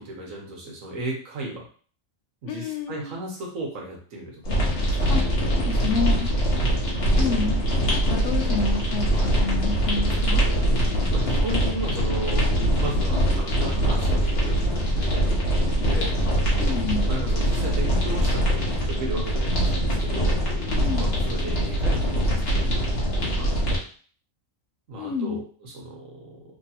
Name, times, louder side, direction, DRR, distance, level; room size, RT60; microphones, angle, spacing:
voice 1, 0.0-1.7 2.4-4.6 4.9-5.2 6.6-7.1 11.1-12.5 12.8-16.1 17.1-18.6 18.9-20.4 21.0-22.7 23.2-23.6 24.9-26.4, right 2 dB, 80° right, -1 dB, 1.4 m, -35 dB
voice 2, 2.5-3.2 5.1-5.2 5.5-6.3 7.2-10.5 16.6-17.1 20.5-21.1 25.0-25.4, left 4 dB, 70° left, 5 dB, 0.9 m, -30 dB
sound 1, 4.4-23.8, equal, 50° left, 1.2 m, -23 dB
3.3 x 3.0 x 2.8 m, 0.43 s
omnidirectional pair, 1.4 m